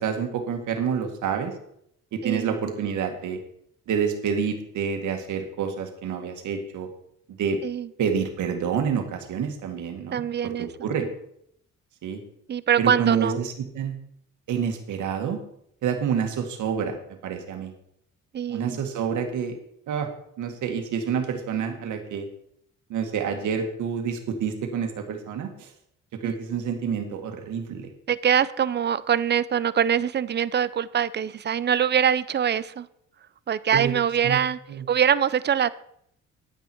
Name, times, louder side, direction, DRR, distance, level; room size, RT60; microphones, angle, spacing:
voice 1, 0.0-1.5 2.1-3.4 3.9-6.9 7.4-7.6 8.0-11.1 12.0-12.2 12.8-14.0 14.5-15.4 15.8-17.7 18.5-19.6 19.9-20.1 20.4-22.3 22.9-25.7 26.2-27.9 33.7-33.9 34.2-34.4 34.7-34.8, right 7 dB, 75° right, 5 dB, 2.0 m, -28 dB
voice 2, 2.2-2.6 7.6-7.9 10.1-10.7 12.5-13.4 18.3-18.8 26.2-26.3 28.1-32.9 33.5-34.6 34.9-35.7, right 8 dB, 35° right, 17 dB, 0.6 m, -23 dB
10.5 x 9.5 x 4.5 m, 0.72 s
cardioid pair, 90°, 30 cm